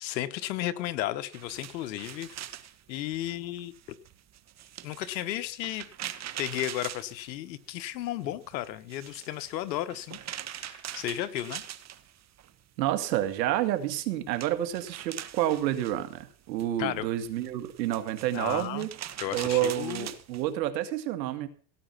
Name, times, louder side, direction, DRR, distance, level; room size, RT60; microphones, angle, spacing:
voice 1, 0.0-2.3 2.9-4.0 4.8-5.8 6.4-10.2 10.5-11.6 16.8-17.1 18.3-18.9 19.2-20.1, left 13 dB, 90° left, 12 dB, 1.5 m, -34 dB
sound 1, 1.3-7.8 8.1-12.5 12.8-20.5, right 11 dB, 30° right, 1.3 m, -43 dB
voice 2, 12.8-18.9 19.3-21.5, right 12 dB, 85° right, 10 dB, 2.4 m, -29 dB
17.5 x 9.3 x 5.9 m, 0.42 s
supercardioid pair, 120°, 50 cm